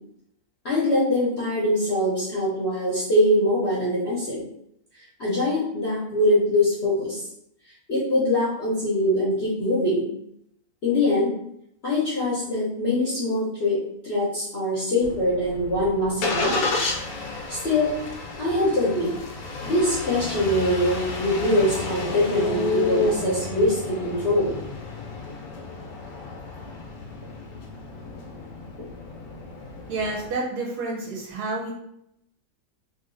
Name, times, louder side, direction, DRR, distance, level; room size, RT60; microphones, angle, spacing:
voice 1, 0.6-4.4 5.2-7.2 7.9-10.1 10.8-11.3 11.8-16.7 17.5-17.9 18.4-19.1 19.6-24.6, left 1 dB, 50° left, -8 dB, 0.8 m, -23 dB
Engine starting, 15.0-30.3, left 3 dB, 75° left, 1.2 m, -31 dB
voice 2, 29.9-31.7, right 3 dB, 75° right, -1 dB, 1.1 m, -29 dB
2.9 x 2.7 x 2.5 m, 0.75 s
omnidirectional pair, 1.8 m